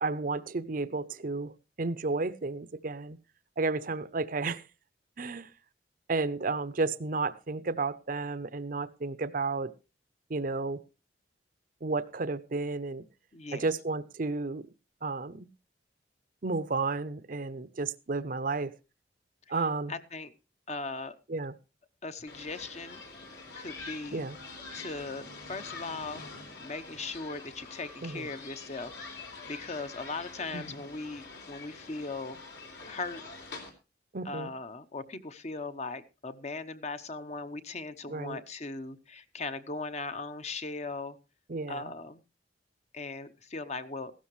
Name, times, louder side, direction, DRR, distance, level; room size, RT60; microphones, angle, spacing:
voice 1, 0.0-3.2 3.6-4.6 5.2-5.5 6.1-9.7 10.3-10.8 11.8-13.1 13.5-14.7 15.0-15.5 16.4-18.7 19.5-19.9 21.3-21.5 24.1-24.4 28.0-28.3 30.5-30.6 34.1-34.5 38.1-38.4 41.5-41.9, right 3 dB, 50° right, 15 dB, 0.7 m, -32 dB
voice 2, 13.3-13.6 19.5-19.6 19.9-20.3 20.7-21.1 22.0-23.0 23.6-24.2 24.7-26.2 26.6-28.9 29.4-32.4 32.8-33.2 34.2-41.2 41.7-42.2 42.9-44.1, left 3 dB, 40° left, 10 dB, 0.9 m, -38 dB
sound 1, 22.3-33.7, left 3 dB, 75° left, 4.0 m, -46 dB
16.0 x 12.5 x 3.1 m, 0.29 s
head